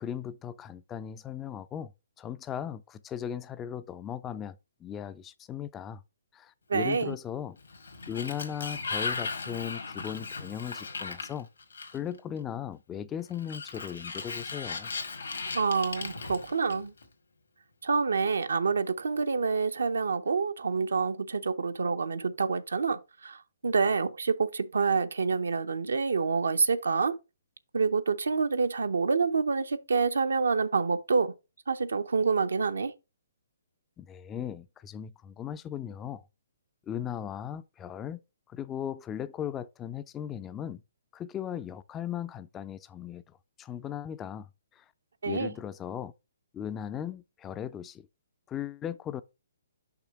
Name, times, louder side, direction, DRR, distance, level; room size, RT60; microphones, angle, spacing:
voice 1, 0.0-1.9 2.2-4.6 4.8-6.0 6.3-7.6 8.1-11.5 11.9-14.9 34.0-36.2 36.9-38.2 38.5-40.8 41.1-43.2 43.6-44.5 44.8-44.9 45.2-46.1 46.5-48.0 48.5-49.2, left 9 dB, 15° left, 0.3 m, -37 dB
voice 2, 6.7-7.2 15.5-16.9 17.8-27.2 27.7-31.3 31.7-32.9 45.2-45.5, right 5 dB, 75° right, 0.6 m, -27 dB
Sliding door, 7.6-12.2 13.3-17.0, left 4 dB, 75° left, 1.7 m, -37 dB
5.9 x 3.3 x 5.5 m
figure-of-eight pair, 130°, 0 cm